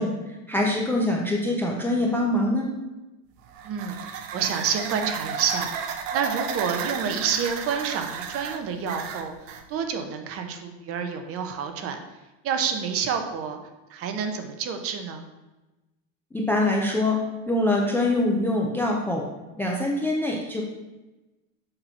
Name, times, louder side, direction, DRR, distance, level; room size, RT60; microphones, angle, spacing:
voice 1, 0.0-2.7 16.3-17.2 17.5-19.2 19.6-20.6, left 1 dB, 5° left, -1 dB, 0.4 m, -24 dB
sound 1, 3.4-9.7, right 7 dB, 80° right, 0.8 m, -33 dB
voice 2, 3.6-5.7 6.1-9.3 9.7-12.0 12.4-13.6 13.9-15.3, right 6 dB, 35° right, 6 dB, 0.7 m, -28 dB
6.8 x 2.8 x 5.5 m, 1.1 s
supercardioid pair, 140°, 38 cm